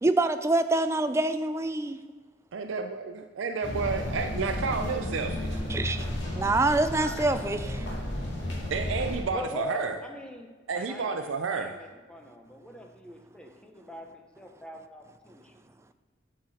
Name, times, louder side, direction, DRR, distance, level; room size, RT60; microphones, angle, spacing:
voice 1, 0.0-2.0 5.7-6.1 6.3-7.9, right 2 dB, 15° right, 10 dB, 0.3 m, -26 dB
voice 2, 2.5-5.6 8.7-10.0 10.7-11.7, right 4 dB, 90° right, 6 dB, 0.5 m, -31 dB
sound 1, 3.6-9.2, left 1 dB, 75° left, 1.9 m, -33 dB
voice 3, 9.3-15.5, equal, 5° left, 2 dB, 0.8 m, -43 dB
8.7 x 5.8 x 4.2 m, 1.4 s
head